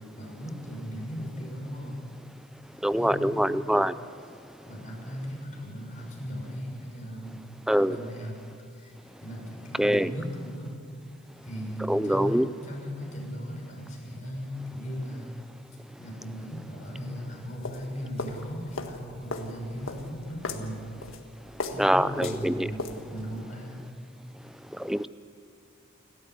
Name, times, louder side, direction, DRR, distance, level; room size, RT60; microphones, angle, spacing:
voice 1, 0.2-2.0 2.9-3.5 4.6-8.4 8.7-10.7 11.4-15.3 16.0-20.8 21.7-23.8, equal, 40° left, -2 dB, 6.3 m, -37 dB
voice 2, 2.8-3.9 7.7-8.0 9.8-10.1 11.9-12.5 21.8-22.7 24.8-25.1, equal, ahead, 15 dB, 0.4 m, -24 dB
sound 1, 17.4-23.4, left 2 dB, 80° left, 1.7 m, -38 dB
29.0 x 13.5 x 8.2 m, 2.6 s
head